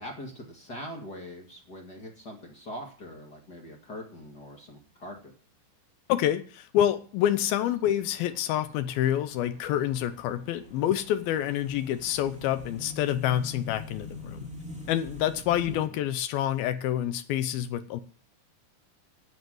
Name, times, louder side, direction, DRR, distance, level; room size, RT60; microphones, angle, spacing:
voice 1, 0.0-5.3 15.7-16.0, equal, 35° left, 1 dB, 1.7 m, -42 dB
voice 2, 6.1-14.5 14.9-18.0, left 11 dB, 75° left, 12 dB, 2.3 m, -27 dB
sound 1, 7.4-15.8, left 2 dB, 5° right, 1.4 m, -45 dB
11.0 x 8.2 x 7.7 m, 0.43 s
omnidirectional pair, 5.1 m